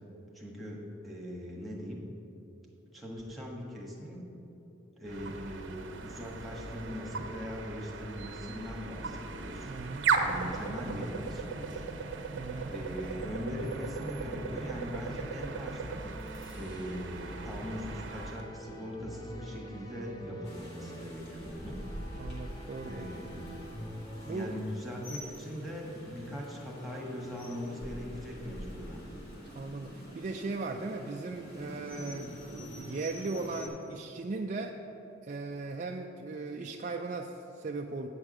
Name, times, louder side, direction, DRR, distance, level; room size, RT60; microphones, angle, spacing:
voice 1, 0.3-2.0 2.9-4.2 5.0-9.7 10.2-11.9 12.7-16.1 16.5-21.8 22.8-23.5 23.7-23.8 24.3-29.0, equal, ahead, -3 dB, 1.5 m, -40 dB
sound 1, 5.1-18.5, right 4 dB, 65° right, 0.7 m, -37 dB
voice 2, 9.7-10.5 12.3-12.7 22.2-23.1 24.3-24.5 29.5-34.8 35.2-38.1, right 3 dB, 40° right, 2 dB, 0.4 m, -38 dB
sound 2, 12.6-24.6, equal, 20° left, 0.9 m, -47 dB
Rain, 20.4-33.7, equal, 55° left, 2.0 m, -46 dB
8.9 x 4.8 x 7.7 m, 3.0 s
head